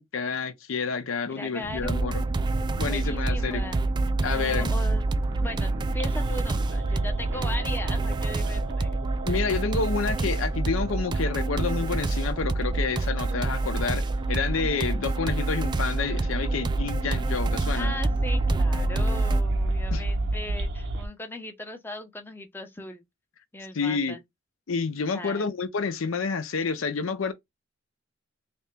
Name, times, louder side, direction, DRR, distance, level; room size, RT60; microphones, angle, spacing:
voice 1, 0.0-2.2 2.8-3.7 4.2-4.7 9.3-18.0 19.9-20.0 23.7-24.2 24.7-27.3, left 5 dB, 70° left, 0.6 m, -29 dB
voice 2, 1.3-2.2 2.9-3.8 4.3-5.0 5.4-8.9 17.7-23.0 23.5-24.2 25.1-25.6, left 1 dB, 10° left, 0.7 m, -38 dB
sound 1, 1.6-21.1, right 2 dB, 60° right, 0.7 m, -32 dB
sound 2, 1.8-19.4, right 2 dB, 20° right, 0.3 m, -28 dB
3.3 x 2.8 x 3.3 m
head